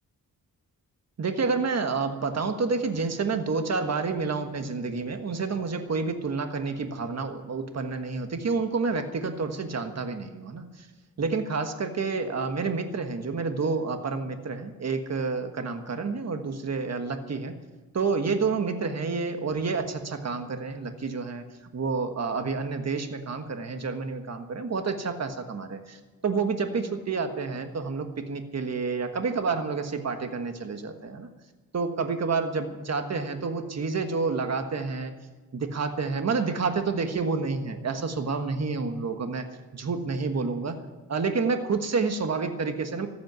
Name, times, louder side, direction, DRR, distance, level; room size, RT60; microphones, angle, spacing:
voice 1, 1.2-10.9 11.2-17.5 17.9-21.4 21.7-31.3 31.7-35.1 35.5-39.5 39.7-40.8 41.1-43.1, right 4 dB, 50° right, 7 dB, 1.5 m, -29 dB
14.5 x 8.8 x 9.6 m, 1.3 s
wide cardioid pair, 110°, 34 cm